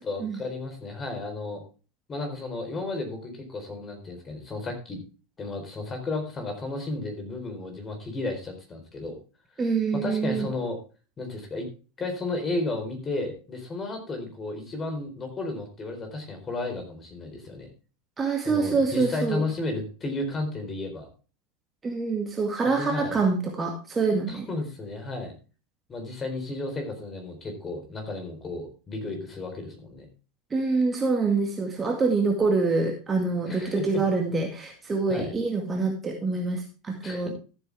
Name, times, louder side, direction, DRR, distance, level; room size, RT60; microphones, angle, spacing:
voice 1, 0.0-1.6 2.1-5.0 5.4-9.1 9.9-10.8 11.2-11.7 12.0-17.7 18.4-21.1 22.8-23.2 24.3-25.4 25.9-30.1 33.5-34.0 35.1-35.3 37.0-37.3, left 2 dB, 20° left, 5 dB, 4.3 m, -33 dB
voice 2, 9.6-10.5 18.2-19.4 21.8-24.5 30.5-37.3, right 4 dB, 20° right, 2 dB, 2.2 m, -26 dB
13.5 x 8.2 x 3.5 m, 0.34 s
figure-of-eight pair, 85°, 0 cm